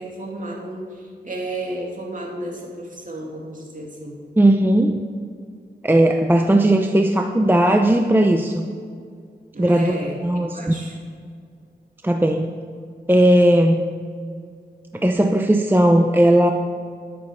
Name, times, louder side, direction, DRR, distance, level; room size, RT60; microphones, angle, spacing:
voice 1, 0.0-4.2 9.5-11.0, right 1 dB, 45° right, -2 dB, 2.9 m, -32 dB
voice 2, 4.4-5.0 5.8-8.7 9.6-9.9 10.2-10.7 12.0-12.5 13.1-13.9 14.9-16.5, right 1 dB, 10° right, 4 dB, 0.7 m, -17 dB
12.0 x 7.0 x 6.9 m, 2.2 s
cardioid pair, 65°, 18 cm